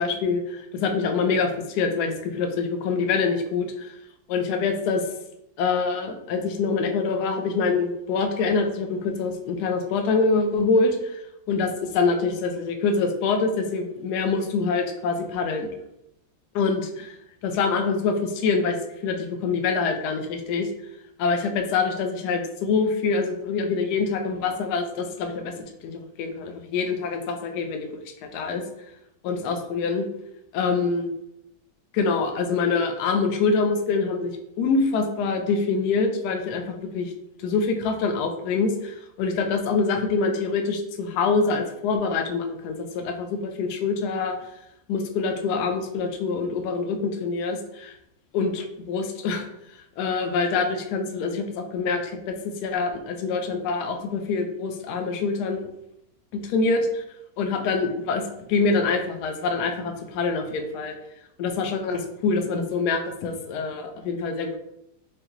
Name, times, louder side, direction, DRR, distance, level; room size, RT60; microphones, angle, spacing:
voice 1, 0.0-3.9 4.3-5.0 5.6-15.7 16.5-17.2 17.4-18.8 19.0-20.7 21.2-25.5 25.8-27.9 28.2-28.6 29.2-30.0 30.5-31.1 31.9-37.1 37.4-44.4 44.9-47.9 48.3-49.4 50.0-52.3 52.6-55.7 56.3-57.0 57.4-58.2 58.5-60.9 61.4-64.6, left 4 dB, 70° left, 5 dB, 1.0 m, -25 dB
4.8 x 2.2 x 2.9 m, 0.82 s
omnidirectional pair, 2.1 m